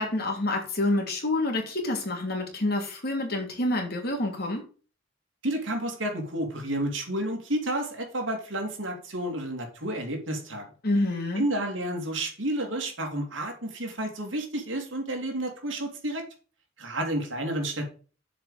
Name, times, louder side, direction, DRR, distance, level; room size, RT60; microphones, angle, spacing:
voice 1, 0.0-4.6 10.8-11.5, left 2 dB, 55° left, 2 dB, 2.8 m, -27 dB
voice 2, 5.4-10.7 11.4-16.2 16.8-17.9, right 1 dB, 70° right, 2 dB, 2.9 m, -31 dB
7.2 x 5.1 x 7.2 m, 0.38 s
head